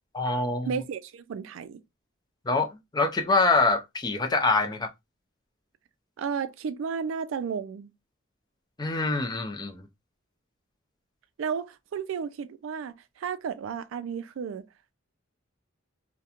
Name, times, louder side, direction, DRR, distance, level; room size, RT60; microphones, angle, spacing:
voice 1, 0.1-0.7 2.5-2.7 2.9-4.9 8.8-9.8, left 3 dB, 20° left, 0.4 m, -25 dB
voice 2, 0.7-1.8 6.2-7.9 11.4-14.6, right 6 dB, 70° right, 0.3 m, -33 dB
2.8 x 2.2 x 2.4 m
head